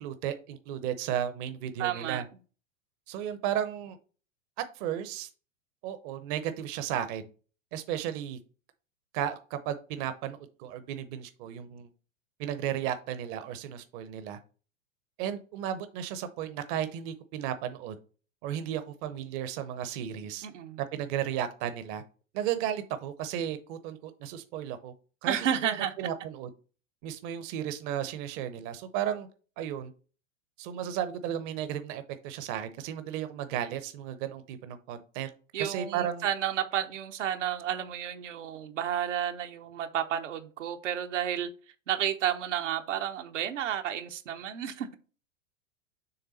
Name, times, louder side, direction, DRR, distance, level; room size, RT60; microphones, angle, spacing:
voice 1, 0.0-2.2 3.1-4.0 4.7-5.3 5.8-7.2 7.7-8.4 9.1-11.9 12.4-14.4 15.2-18.0 18.4-20.5 20.9-22.0 22.3-24.9 25.2-25.5 26.0-26.5 27.0-29.3 29.6-29.9 30.6-35.3 35.6-36.2, right 10 dB, 40° right, 0.8 m, -34 dB
voice 2, 1.8-2.2 20.4-20.8 25.3-25.9 35.5-41.5 41.9-44.9, right 10 dB, 65° right, 0.9 m, -31 dB
6.7 x 3.6 x 4.1 m
hypercardioid pair, 100°, 39 cm